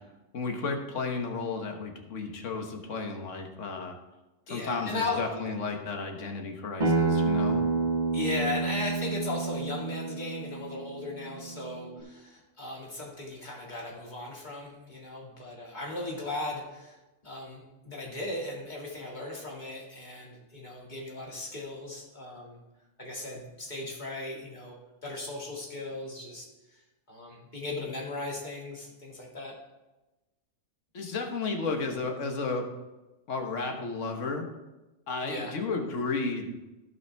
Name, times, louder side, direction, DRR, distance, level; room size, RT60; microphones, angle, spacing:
voice 1, 0.3-4.0 4.5-7.7 30.9-32.7 33.3-34.5 35.1-36.5, left 4 dB, 85° left, 3 dB, 1.5 m, -33 dB
voice 2, 4.5-5.2 8.1-17.0 17.2-22.6 23.0-24.8 25.0-26.5 27.1-29.5 35.2-35.5, left 2 dB, 40° left, -3 dB, 2.2 m, -37 dB
Acoustic guitar, 6.8-12.0, right 3 dB, 40° right, 1.4 m, -29 dB
15.5 x 5.5 x 3.4 m, 1.1 s
omnidirectional pair, 1.2 m